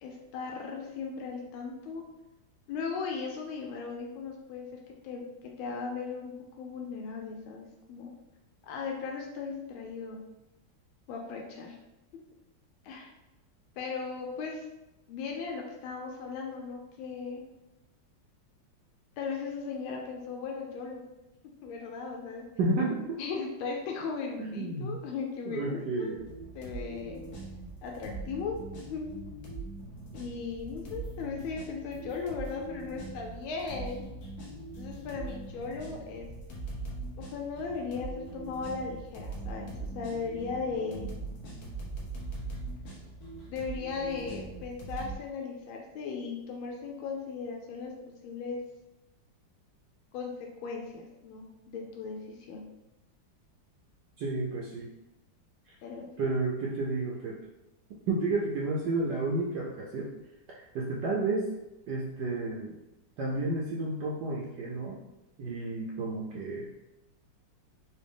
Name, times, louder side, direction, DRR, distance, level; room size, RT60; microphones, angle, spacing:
voice 1, 0.0-2.0 2.7-4.7 5.0-5.2 5.6-6.3 6.6-8.1 8.6-10.2 11.1-11.8 12.8-13.1 13.8-14.6 15.1-17.4 19.2-21.0 21.6-22.4 23.2-26.2 26.5-27.2 27.8-28.6 28.9-29.1 30.1-34.0 34.7-36.3 37.2-41.1 43.5-47.9 48.2-48.6 50.1-50.3 50.6-52.6 55.8-56.3, left 5 dB, 90° left, 1 dB, 1.4 m, -37 dB
voice 2, 22.6-23.2 24.4-25.0 25.5-26.2 54.2-54.9 55.7-55.8 56.2-57.4 58.1-60.1 60.5-61.5 61.9-62.7 63.2-65.0 65.4-66.7, right 2 dB, 70° right, -3 dB, 1.1 m, -31 dB
sound 1, 26.1-45.1, right 2 dB, 60° left, 1.2 m, -41 dB
4.1 x 2.6 x 3.4 m, 0.96 s
omnidirectional pair, 2.2 m